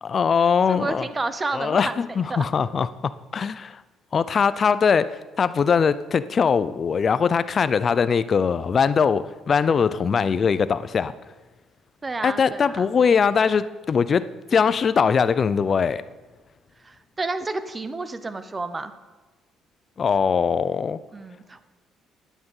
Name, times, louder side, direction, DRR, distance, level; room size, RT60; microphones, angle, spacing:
voice 1, 0.0-1.0 1.5-3.8 4.1-11.1 12.2-16.0 20.0-21.0, left 6 dB, 40° left, 15 dB, 0.6 m, -21 dB
voice 2, 0.7-2.0 2.3-2.5 12.0-12.9 16.8-18.9 21.1-21.6, right 3 dB, 20° right, 11 dB, 0.9 m, -30 dB
10.0 x 9.4 x 8.1 m, 1.2 s
cardioid pair, 115°, 0 cm